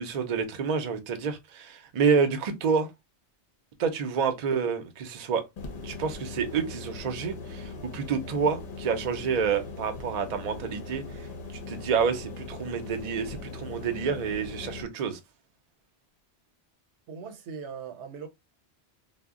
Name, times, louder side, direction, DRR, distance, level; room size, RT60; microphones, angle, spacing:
voice 1, 0.0-2.9 3.8-5.4 5.8-11.3 11.7-15.2, right 6 dB, 50° right, 0.5 m, -28 dB
sound 1, 5.6-14.8, left 3 dB, 55° left, 0.5 m, -40 dB
voice 2, 13.3-13.9 17.1-18.3, right 6 dB, 85° right, 0.9 m, -41 dB
2.1 x 2.0 x 3.5 m
omnidirectional pair, 1.1 m